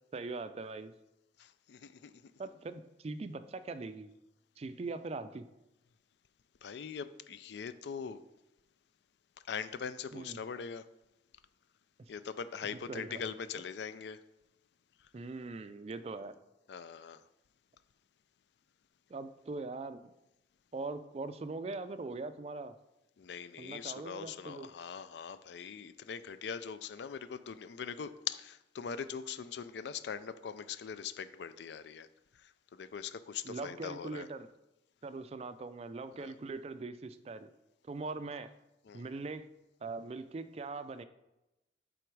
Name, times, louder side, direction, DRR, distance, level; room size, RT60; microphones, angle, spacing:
voice 1, 0.1-0.9 2.4-4.1 4.6-5.5 10.1-10.4 12.9-13.2 15.1-16.3 19.1-20.0 20.7-22.7 23.6-24.7 33.4-34.5 35.0-37.5 37.9-38.5 38.9-39.4 39.8-41.0, right 3 dB, 35° right, 11 dB, 0.3 m, -41 dB
voice 2, 1.4-2.1 6.6-8.2 9.5-10.9 12.1-14.2 16.7-17.2 23.2-32.1 32.3-34.3 36.1-36.3 38.9-39.1, left 7 dB, 70° left, 13 dB, 0.4 m, -42 dB
7.9 x 3.9 x 4.7 m, 0.95 s
head